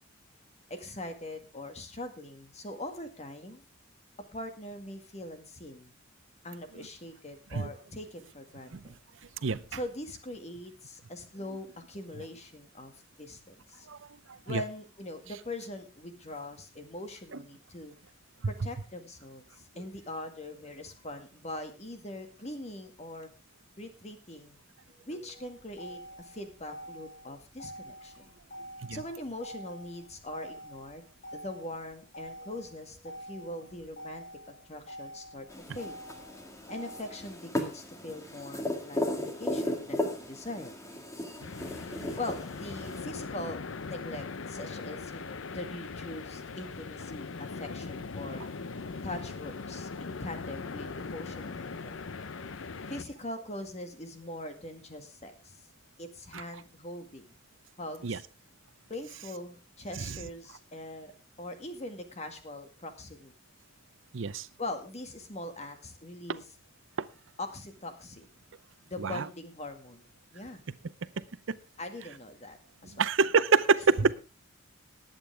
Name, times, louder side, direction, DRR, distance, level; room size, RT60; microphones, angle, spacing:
voice 1, 0.7-3.6 4.3-5.9 6.4-8.9 9.7-12.9 13.2-13.9 14.5-17.9 18.5-23.3 23.8-24.6 25.0-28.3 28.9-31.0 31.3-35.5 35.7-35.9 36.7-40.8 42.2-48.4 49.0-52.0 52.9-55.6 56.0-57.3 57.8-58.2 58.9-61.1 61.4-63.3 64.6-66.4 67.4-68.3 68.8-70.1 70.3-70.6 71.8-73.1, left 1 dB, 35° left, 7 dB, 1.9 m, -42 dB
Motor vehicle (road), 25.3-37.3, equal, 50° left, 6.0 m, -47 dB
sound 1, 35.5-43.0, left 1 dB, 15° left, 2.0 m, -36 dB
sound 2, 41.4-53.0, left 4 dB, 70° left, 0.7 m, -40 dB
voice 2, 64.1-64.5 69.0-69.2 73.0-74.1, right 5 dB, 70° right, 16 dB, 0.6 m, -26 dB
19.0 x 8.8 x 3.5 m, 0.30 s
head